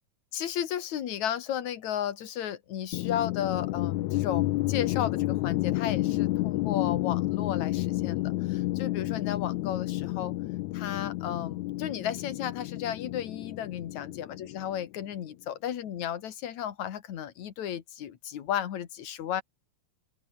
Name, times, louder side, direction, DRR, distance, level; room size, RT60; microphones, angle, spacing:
voice 1, 0.3-10.3 10.7-19.4, left 10 dB, 60° left, 3.0 m, -34 dB
sound 1, 2.9-15.1, left 18 dB, 80° left, 1.8 m, -30 dB
open air
omnidirectional pair, 3.8 m